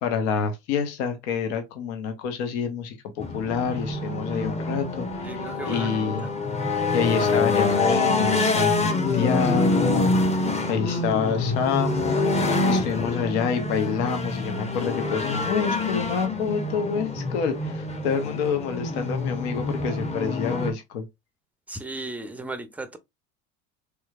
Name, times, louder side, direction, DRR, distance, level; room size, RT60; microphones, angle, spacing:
voice 1, 0.0-6.3 6.9-12.2 12.7-21.1, left 6 dB, 65° left, 0.9 m, -28 dB
sound 1, 3.2-20.7, left 3 dB, 20° left, 0.9 m, -26 dB
voice 2, 5.2-6.1 21.7-23.0, right 2 dB, 5° right, 0.5 m, -35 dB
3.3 x 3.0 x 2.4 m
hypercardioid pair, 80°, 36 cm